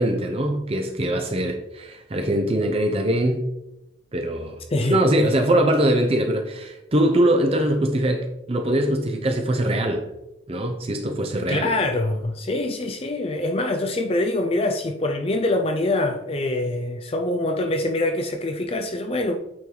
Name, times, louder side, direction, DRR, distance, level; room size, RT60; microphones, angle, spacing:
voice 1, 0.0-3.5 4.1-4.6 4.9-10.1 10.5-11.7, right 1 dB, 30° right, 4 dB, 0.6 m, -22 dB
voice 2, 4.7-5.3 11.5-19.4, left 2 dB, 30° left, 5 dB, 0.4 m, -24 dB
8.6 x 4.5 x 3.8 m, 0.93 s
head